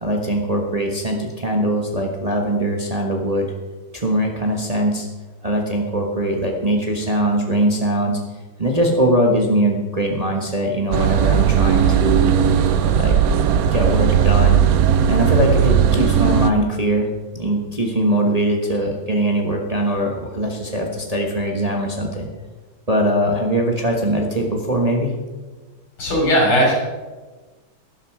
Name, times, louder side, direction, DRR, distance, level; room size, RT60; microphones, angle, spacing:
voice 1, 0.0-3.5 3.9-5.1 5.4-8.2 8.6-12.3 13.0-13.2 13.7-14.6 15.1-22.3 22.9-25.1, right 1 dB, 25° right, 1 dB, 1.0 m, -21 dB
sound 1, 10.9-16.5, right 8 dB, 65° right, 0.9 m, -16 dB
voice 2, 26.0-26.7, equal, 90° left, -1 dB, 4.7 m, -17 dB
12.0 x 11.5 x 4.7 m, 1.3 s
omnidirectional pair, 2.3 m